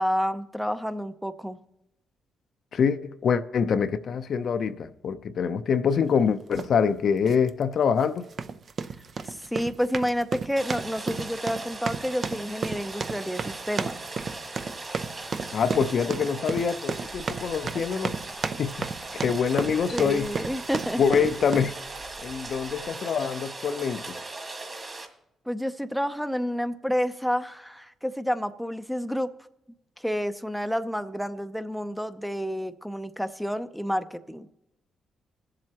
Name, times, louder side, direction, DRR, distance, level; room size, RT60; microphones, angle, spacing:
voice 1, 0.0-1.6 9.2-14.0 19.9-21.3 25.5-29.3 30.0-34.5, equal, ahead, 0.6 m, -29 dB
voice 2, 2.7-8.2 15.5-18.2 18.6-18.9 19.1-20.3 21.0-21.8 22.2-24.0, left 6 dB, 60° left, 0.6 m, -25 dB
sound 1, 6.5-6.7 7.3-7.5 8.2-21.8, right 5 dB, 50° right, 0.5 m, -33 dB
Rain, 10.6-25.1, right 2 dB, 35° right, 2.0 m, -39 dB
sound 2, 13.7-23.0, right 4 dB, 65° right, 3.9 m, -50 dB
21.0 x 7.5 x 2.9 m
cardioid pair, 95°, 0 cm